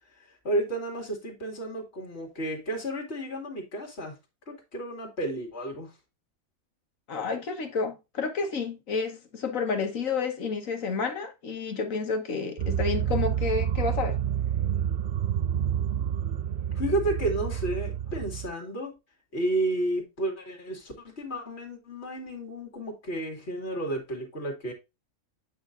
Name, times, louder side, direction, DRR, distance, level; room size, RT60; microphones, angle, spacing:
voice 1, 0.2-4.2 4.5-5.9 16.7-19.0 19.3-24.7, right 1 dB, 45° left, 2.5 m, -32 dB
voice 2, 7.1-14.2, left 4 dB, 65° left, 1.7 m, -30 dB
sound 1, 12.6-18.5, right 9 dB, 65° right, 0.7 m, -28 dB
8.7 x 5.5 x 2.5 m
omnidirectional pair, 1.5 m